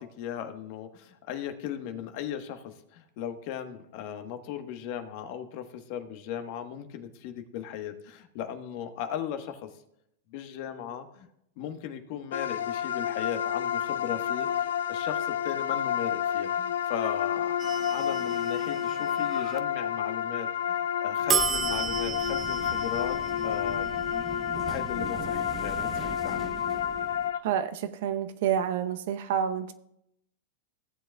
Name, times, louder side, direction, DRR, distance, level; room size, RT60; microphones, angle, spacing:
voice 1, 0.0-9.7 10.3-11.3 11.6-17.6 17.9-24.0 24.7-26.5, left 9 dB, 55° left, 7 dB, 1.2 m, -37 dB
sound 1, 12.3-27.4, left 9 dB, 85° left, 0.4 m, -30 dB
sound 2, 17.6-19.6 21.3-27.3, right 7 dB, 25° right, 0.7 m, -35 dB
voice 2, 27.4-29.7, right 9 dB, 65° right, 10 dB, 0.8 m, -28 dB
16.5 x 7.7 x 2.3 m, 0.77 s
hypercardioid pair, 120°, 0 cm